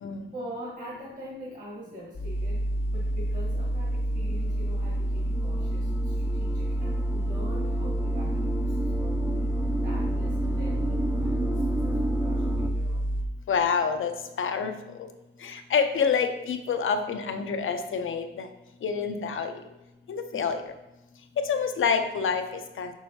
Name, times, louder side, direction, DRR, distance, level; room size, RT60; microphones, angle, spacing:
voice 1, 0.3-13.1 20.3-20.7, equal, 40° right, -5 dB, 1.3 m, -44 dB
sound 1, 2.1-13.2, right 1 dB, 40° left, 0.8 m, -28 dB
sound 2, 3.1-12.7, right 1 dB, 10° right, 0.4 m, -34 dB
voice 2, 13.5-14.1 14.4-14.7 15.4-18.5 18.8-19.5 20.1-20.6 21.4-22.9, left 6 dB, 75° left, 7 dB, 0.7 m, -27 dB
6.4 x 6.2 x 2.8 m, 0.97 s
wide cardioid pair, 150°, 21 cm